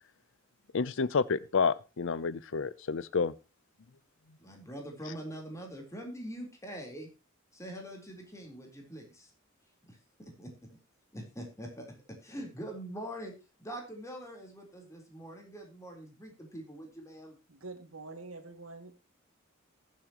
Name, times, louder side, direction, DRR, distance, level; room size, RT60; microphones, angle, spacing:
voice 1, 0.7-3.3, left 5 dB, 65° left, 18 dB, 0.6 m, -29 dB
voice 2, 4.4-7.1 7.5-9.3 9.9-10.7 11.1-13.3 13.6-17.3, right 1 dB, 15° left, 1 dB, 3.8 m, -44 dB
voice 3, 17.5-19.0, right 3 dB, 80° right, 6 dB, 2.4 m, -46 dB
20.0 x 7.6 x 3.0 m, 0.29 s
head